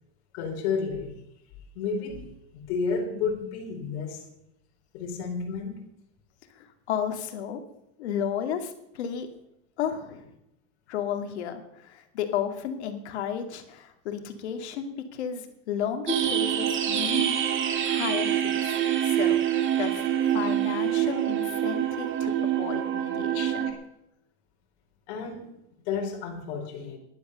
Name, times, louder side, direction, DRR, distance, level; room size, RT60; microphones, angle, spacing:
voice 1, 0.3-1.2 1.7-4.3 4.9-5.8 23.3-23.5 25.1-27.0, left 5 dB, 65° left, 0 dB, 4.2 m, -32 dB
voice 2, 6.5-7.6 8.0-9.3 9.8-10.3 10.9-17.4 17.8-19.4 19.8-23.7, left 8 dB, 85° left, 6 dB, 2.4 m, -33 dB
sound 1, 16.1-23.7, right 10 dB, 35° right, 2.3 m, -26 dB
12.0 x 11.5 x 6.9 m, 0.79 s
supercardioid pair, 115°, 33 cm